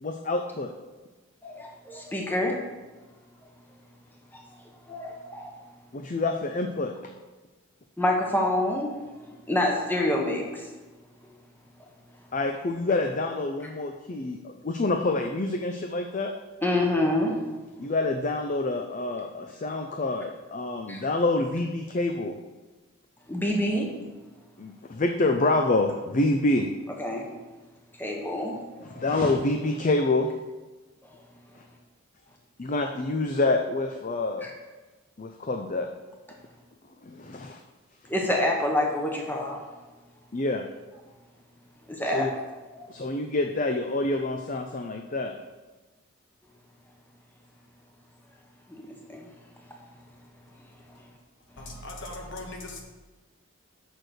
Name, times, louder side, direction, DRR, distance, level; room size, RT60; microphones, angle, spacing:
voice 1, 0.0-0.7 5.9-6.9 12.3-16.3 17.8-22.3 24.6-26.7 28.9-30.3 32.6-34.4 35.2-35.9 37.0-37.6 40.3-40.6 42.1-42.3 42.9-45.3, left 2 dB, 35° left, 0.5 m, -27 dB
voice 2, 1.4-2.6 4.3-4.4 4.9-5.5 8.0-9.0 9.5-10.7 16.6-17.3 20.9-21.0 23.3-23.9 27.0-27.3 28.0-28.5 28.9-29.0 31.1-31.2 34.4-34.5 38.1-39.7 41.9-42.3 42.7-42.9 48.7-49.3, left 1 dB, 10° left, 1.1 m, -27 dB
voice 3, 51.6-52.8, left 2 dB, 55° left, 1.4 m, -39 dB
6.5 x 6.5 x 6.4 m
head